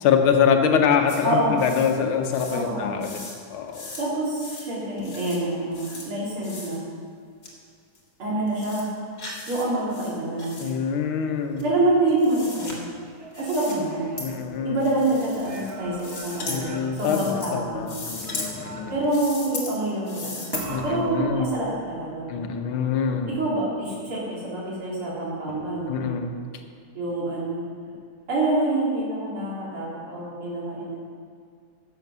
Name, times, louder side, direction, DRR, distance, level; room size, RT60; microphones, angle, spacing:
voice 1, 0.0-3.2 3.5-3.9 10.6-11.6 14.2-14.8 16.5-18.9 20.6-21.5 22.3-23.4 25.9-26.3, left 7 dB, 80° left, 5 dB, 1.7 m, -24 dB
sound 1, 1.1-1.2 1.6-1.9 2.2-2.6 3.0-3.4 3.7-4.0 4.4-4.7 5.0-5.4 5.7-6.1 6.4-6.8 7.4-7.5 7.9-8.0 8.5-8.8 9.2-9.6 9.9-10.7 11.6-12.7 13.3-13.8 14.2-14.3 14.8-15.7 16.0-16.6 17.0-17.5 17.8-18.5 19.0-19.7 20.1-20.6, left 3 dB, 45° left, 2.1 m, -37 dB
voice 2, 1.2-1.6 2.5-3.0 4.0-6.8 8.2-8.9 9.5-10.6 11.6-12.8 13.4-14.1 14.6-17.9 18.9-20.5 20.8-22.3 23.3-26.0 27.0-27.6 28.3-31.0, right 2 dB, 85° right, -6 dB, 3.9 m, -26 dB
sound 2, 13.0-14.9 15.4-17.8 18.2-19.2 20.5-22.1 25.5-26.1, right 2 dB, 35° right, 1.2 m, -40 dB
11.0 x 7.6 x 6.1 m, 2.2 s
omnidirectional pair, 2.3 m